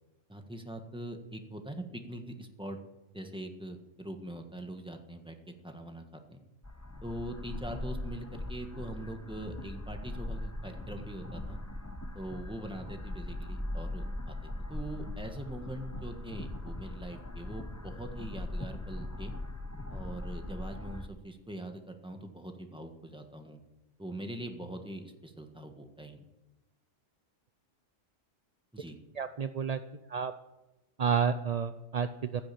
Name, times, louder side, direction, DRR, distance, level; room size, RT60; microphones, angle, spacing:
voice 1, 0.3-2.8 3.1-5.4 5.6-6.4 7.0-11.6 12.1-19.3 19.9-23.6 24.0-26.2 28.7-29.0, right 1 dB, 5° right, 4 dB, 1.5 m, -42 dB
sound 1, 6.6-21.1, left 1 dB, 15° left, 0.9 m, -40 dB
voice 2, 29.2-29.8 30.1-30.3 31.0-32.4, right 7 dB, 55° right, 10 dB, 0.4 m, -30 dB
15.5 x 7.9 x 8.4 m, 1.0 s
omnidirectional pair, 1.3 m